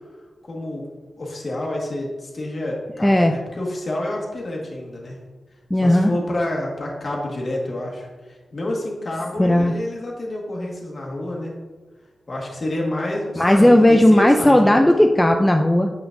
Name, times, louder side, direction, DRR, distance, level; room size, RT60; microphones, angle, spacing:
voice 1, 0.4-0.9 1.2-5.2 5.7-11.5 12.3-14.8, left 1 dB, 45° left, -2 dB, 1.5 m, -28 dB
voice 2, 3.0-3.3 5.7-6.1 9.4-9.7 13.4-15.9, left 1 dB, 10° left, 3 dB, 0.3 m, -15 dB
7.2 x 5.8 x 2.6 m, 1.3 s
wide cardioid pair, 95°, 0 cm